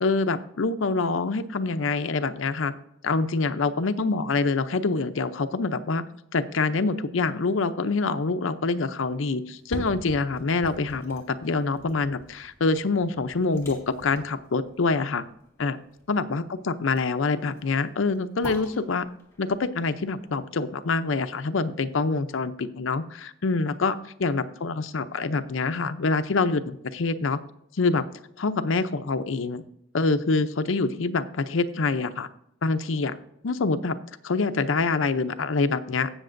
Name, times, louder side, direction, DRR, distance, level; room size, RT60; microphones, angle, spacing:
voice 1, 0.0-2.7 3.0-6.0 6.3-15.2 15.6-15.8 16.1-19.1 19.4-27.4 27.8-28.0 28.4-29.6 29.9-32.3 32.6-33.2 33.4-34.0 34.2-36.1, left 3 dB, 75° left, 10 dB, 0.6 m, -26 dB
sound 1, 9.4-21.5 21.9-22.0, equal, 15° left, 2.1 m, -45 dB
17.0 x 6.5 x 2.6 m, 0.78 s
head